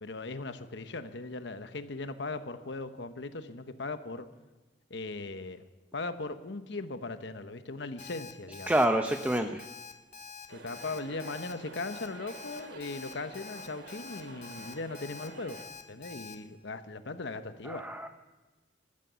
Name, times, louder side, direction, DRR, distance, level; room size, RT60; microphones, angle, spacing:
voice 1, 0.0-4.3 4.9-5.6 5.9-8.7 9.3-9.5 10.5-15.6 15.9-17.9, left 3 dB, 70° left, 10 dB, 1.0 m, -39 dB
Alarm, 8.0-16.3, left 5 dB, 40° left, 1.9 m, -46 dB
voice 2, 8.7-9.6 17.7-18.1, right 1 dB, 10° right, 6 dB, 0.6 m, -27 dB
sound 1, 10.5-15.7, right 2 dB, 75° right, 2.5 m, -49 dB
14.0 x 13.5 x 6.9 m, 1.2 s
head